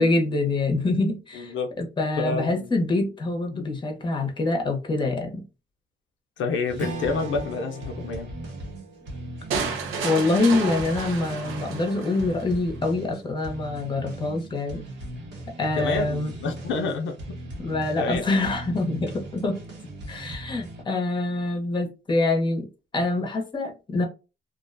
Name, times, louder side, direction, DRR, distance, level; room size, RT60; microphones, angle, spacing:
voice 1, 0.0-5.4 10.0-14.8 15.6-16.3 17.6-19.6 20.1-22.7 22.9-24.1, left 2 dB, 25° left, 0.8 m, -25 dB
voice 2, 1.3-1.7 2.2-2.7 3.5-3.7 6.4-8.4 15.6-17.4 18.0-18.2, left 4 dB, 75° left, 0.5 m, -29 dB
sound 1, 6.7-20.8, right 1 dB, 65° right, 1.0 m, -39 dB
Strum, 6.8-11.4, right 2 dB, 40° right, 0.9 m, -39 dB
sound 2, 9.5-12.5, right 5 dB, 85° right, 0.6 m, -31 dB
2.5 x 2.1 x 2.5 m
cardioid pair, 90°, 20 cm